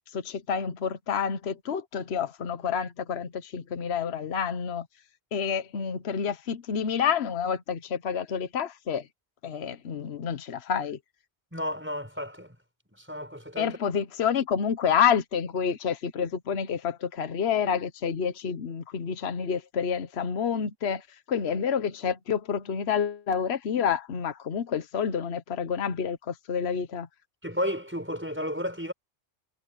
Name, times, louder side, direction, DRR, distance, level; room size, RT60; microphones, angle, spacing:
voice 1, 0.0-4.9 5.3-9.1 9.4-11.0 13.6-27.1, left 7 dB, 70° left, 1.2 m, -28 dB
voice 2, 11.5-12.5 12.9-13.8 27.4-28.9, equal, 10° right, 6.6 m, -32 dB
omnidirectional pair, 1.1 m